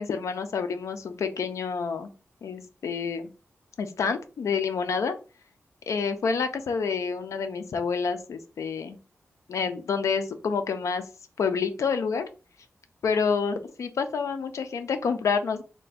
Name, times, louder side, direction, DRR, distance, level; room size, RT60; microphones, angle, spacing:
voice 1, 0.0-2.1 2.4-3.3 3.8-5.1 5.9-9.0 9.5-11.0 11.4-12.3 13.0-15.6, left 5 dB, 85° left, 9 dB, 0.5 m, -28 dB
3.4 x 2.2 x 4.1 m, 0.34 s
wide cardioid pair, 170°, 5 cm